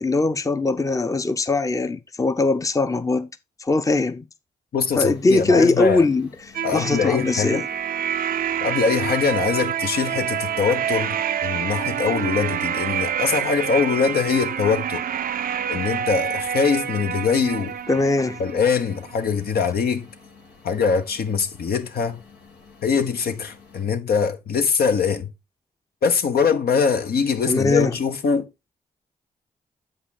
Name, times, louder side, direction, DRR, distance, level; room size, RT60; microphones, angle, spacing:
voice 1, 0.0-3.3 3.6-4.3 5.0-6.3 6.7-7.7 17.9-18.4 27.5-27.9, left 3 dB, 20° left, 0.7 m, -21 dB
voice 2, 4.7-6.1 6.6-7.6 8.6-15.0 15.7-17.7 18.4-20.1 20.6-22.2 22.8-25.3 26.0-28.5, left 6 dB, 70° left, 1.1 m, -22 dB
sound 1, 4.8-23.8, left 5 dB, 90° left, 2.2 m, -50 dB
sound 2, 6.5-19.2, right 9 dB, 60° right, 0.5 m, -27 dB
7.5 x 5.5 x 4.0 m
supercardioid pair, 50°, 17 cm